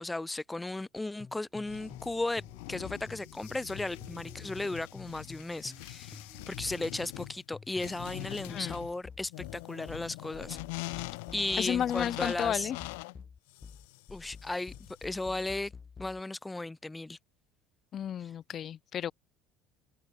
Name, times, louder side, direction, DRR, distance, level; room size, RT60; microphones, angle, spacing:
voice 1, 0.0-2.4 2.7-10.9 11.3-12.7 14.1-14.7 15.0-15.7 16.0-17.2 18.2-18.3, left 2 dB, 10° left, 1.8 m, -35 dB
sound 1, 1.2-2.1 2.4-5.9 6.1-16.2, left 5 dB, 30° left, 3.6 m, -49 dB
sound 2, 1.3-7.6, right 7 dB, 40° right, 3.5 m, -62 dB
sound 3, 1.7-15.7, left 27 dB, 80° left, 1.5 m, -44 dB
voice 2, 11.6-12.8 17.9-19.1, left 9 dB, 45° left, 0.9 m, -32 dB
supercardioid pair, 85°, 0 cm